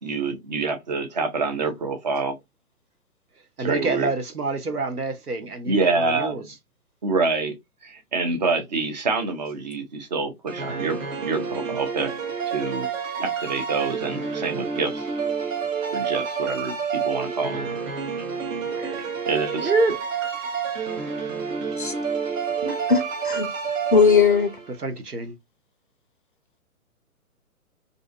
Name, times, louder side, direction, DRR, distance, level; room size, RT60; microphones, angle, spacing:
voice 1, 0.0-2.4 3.6-4.1 5.7-6.5 7.0-7.6 7.8-12.1 12.5-12.9 13.2-15.1 15.9-17.7 19.3-19.7, right 4 dB, 30° right, 0.5 m, -26 dB
voice 2, 3.6-6.4 18.6-19.1 19.6-20.0 24.7-25.4, right 3 dB, 90° right, 0.9 m, -27 dB
sound 1, 10.5-24.8, right 6 dB, 60° right, 0.8 m, -29 dB
voice 3, 22.6-23.5 23.9-24.5, left 5 dB, 35° left, 0.4 m, -19 dB
2.6 x 2.3 x 2.3 m
figure-of-eight pair, 130°, 45 cm